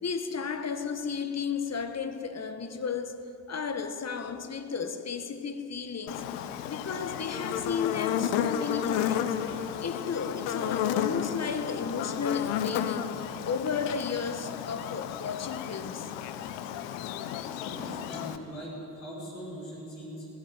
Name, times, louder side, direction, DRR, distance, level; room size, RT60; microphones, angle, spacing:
voice 1, 0.0-6.3 6.6-9.4 9.8-16.1, left 6 dB, 30° left, 1.6 m, -33 dB
Buzz, 6.1-18.4, left 10 dB, 60° left, 1.1 m, -32 dB
voice 2, 17.7-20.3, equal, 80° left, 5.3 m, -41 dB
17.5 x 17.0 x 9.4 m
figure-of-eight pair, 45°, 48 cm